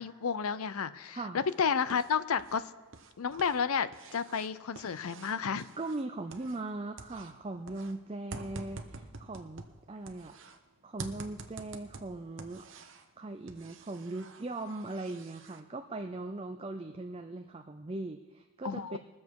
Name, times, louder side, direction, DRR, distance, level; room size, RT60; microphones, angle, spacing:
voice 1, 0.0-2.6 3.2-5.6 18.6-19.0, left 6 dB, 85° left, 15 dB, 0.6 m, -31 dB
voice 2, 1.1-1.4 5.8-9.6 9.9-10.3 10.8-12.7 13.2-19.0, right 2 dB, 25° right, 5 dB, 0.4 m, -39 dB
sound 1, 1.5-2.6 2.9-6.7 7.0-10.6 11.0-13.1 13.5-15.6, right 3 dB, 60° right, 0.9 m, -48 dB
21.0 x 7.2 x 4.7 m, 1.3 s
head